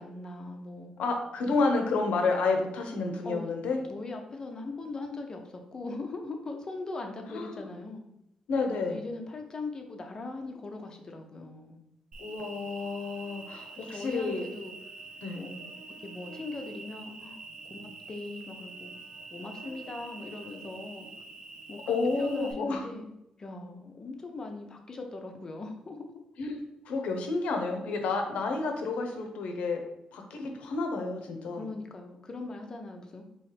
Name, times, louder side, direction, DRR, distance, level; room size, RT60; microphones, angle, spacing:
voice 1, 0.0-0.9 3.2-3.5 3.9-8.0 8.8-11.8 13.7-14.8 15.3-15.7 16.0-18.9 19.3-21.1 21.7-23.1 23.4-26.1 31.5-33.2, left 3 dB, 30° left, 4 dB, 0.6 m, -40 dB
voice 2, 1.0-3.8 7.3-7.6 8.5-9.0 12.2-14.4 15.2-15.4 21.9-22.8 26.4-26.6 26.9-29.8 30.1-31.7, left 3 dB, 85° left, 4 dB, 0.7 m, -30 dB
Cricket, 12.1-22.5, right 3 dB, 50° right, 0.8 m, -46 dB
4.4 x 3.0 x 3.3 m, 0.82 s
cardioid pair, 130°, 2 cm